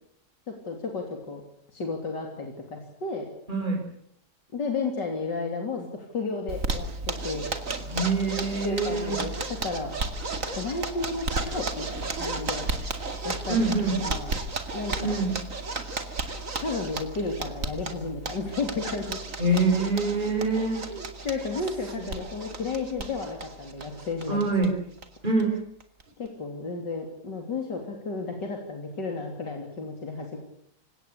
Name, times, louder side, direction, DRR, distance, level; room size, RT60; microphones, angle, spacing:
voice 1, 0.6-1.4 1.7-3.3 4.5-7.5 8.6-9.3 9.6-9.9 10.5-12.7 13.2-13.6 14.0-14.4 14.7-15.1 16.6-19.2 20.9-24.4 26.2-30.4, left 3 dB, 80° left, 2 dB, 3.9 m, -33 dB
voice 2, 3.5-3.8 7.8-9.2 13.5-14.0 15.0-15.4 19.4-20.9 22.0-22.1 24.3-24.7 25.2-25.6, right 2 dB, 25° right, 2 dB, 5.2 m, -25 dB
Zipper (clothing), 6.5-24.7 25.0-25.1 25.4-25.5 25.8-26.3, right 3 dB, 50° right, 2.7 m, -34 dB
28.0 x 17.5 x 8.4 m, 0.69 s
omnidirectional pair, 1.8 m